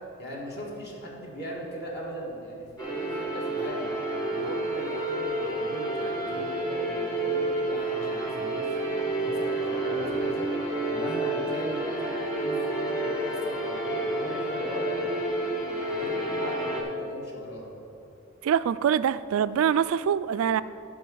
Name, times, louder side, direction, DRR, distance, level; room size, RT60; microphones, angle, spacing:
voice 1, 0.2-3.9 4.3-10.6 10.9-11.8 12.4-15.1 15.7-17.7, equal, 55° left, -3 dB, 1.7 m, -38 dB
sound 1, 2.8-16.8, right 2 dB, 20° left, 1.4 m, -29 dB
voice 2, 18.4-20.6, right 8 dB, 80° right, 16 dB, 0.3 m, -24 dB
10.5 x 5.0 x 6.3 m, 2.8 s
head